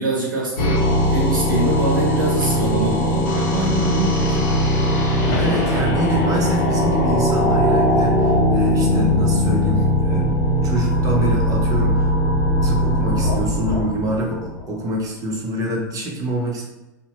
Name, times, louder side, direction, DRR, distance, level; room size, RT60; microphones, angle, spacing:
voice 1, 0.0-4.5, right 2 dB, 90° right, -2 dB, 0.4 m, -24 dB
sound 1, 0.6-14.7, equal, 65° left, 1.2 m, -19 dB
sound 2, 3.2-13.9, left 3 dB, 15° left, 1.2 m, -32 dB
voice 2, 5.3-10.3 10.6-12.1 12.6-16.6, right 1 dB, 35° right, -1 dB, 1.0 m, -26 dB
2.9 x 2.4 x 2.9 m, 1.0 s
hypercardioid pair, 90°, 10 cm